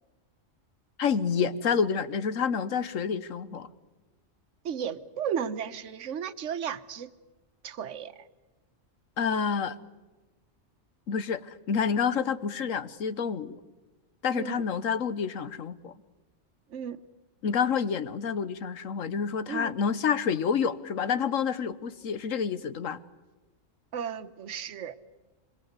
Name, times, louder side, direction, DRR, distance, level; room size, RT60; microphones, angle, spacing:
voice 1, 1.0-3.7 9.2-9.8 11.1-13.6 14.2-16.0 17.4-23.0, left 6 dB, 85° left, 13 dB, 1.4 m, -28 dB
voice 2, 4.6-7.1 7.6-8.3 14.3-14.6 16.7-17.0 19.5-19.7 23.9-24.9, right 8 dB, 70° right, 11 dB, 1.3 m, -34 dB
26.5 x 22.0 x 8.1 m, 1.2 s
omnidirectional pair, 1.3 m